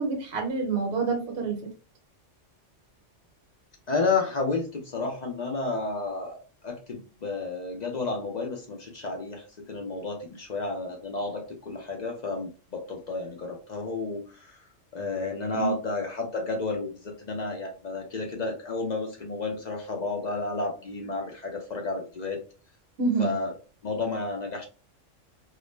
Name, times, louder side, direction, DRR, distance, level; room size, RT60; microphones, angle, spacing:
voice 1, 0.0-1.6 15.5-15.8 23.0-23.4, right 4 dB, 65° right, 1 dB, 0.9 m, -27 dB
voice 2, 3.9-14.6 14.9-22.4 23.2-23.5 23.8-24.7, left 3 dB, 55° left, 1 dB, 0.4 m, -31 dB
2.3 x 2.0 x 3.1 m, 0.35 s
omnidirectional pair, 1.3 m